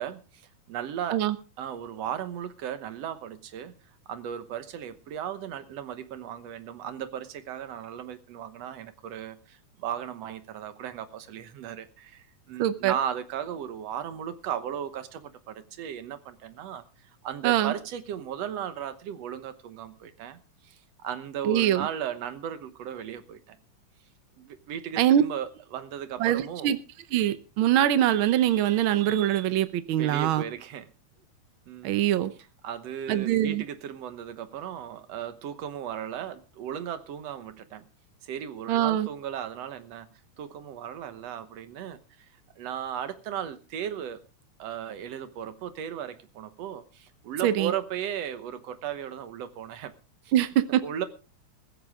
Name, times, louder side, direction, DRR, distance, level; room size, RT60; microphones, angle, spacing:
voice 1, 0.0-1.2 1.6-3.7 4.1-16.8 17.2-23.6 24.4-26.7 30.0-30.9 31.7-31.9 32.6-37.8 38.2-40.1 40.4-42.0 42.6-44.2 44.6-49.9 50.2-50.3 50.8-51.1, right 9 dB, 65° right, 2.1 m, -36 dB
voice 2, 12.6-12.9 17.4-17.7 21.4-21.9 25.0-25.2 26.2-26.8 27.1-30.4 31.8-32.3 33.1-33.6 38.7-39.1 47.4-47.7 50.3-50.8, right 12 dB, 80° right, 1.1 m, -23 dB
15.5 x 14.5 x 3.6 m
omnidirectional pair, 3.4 m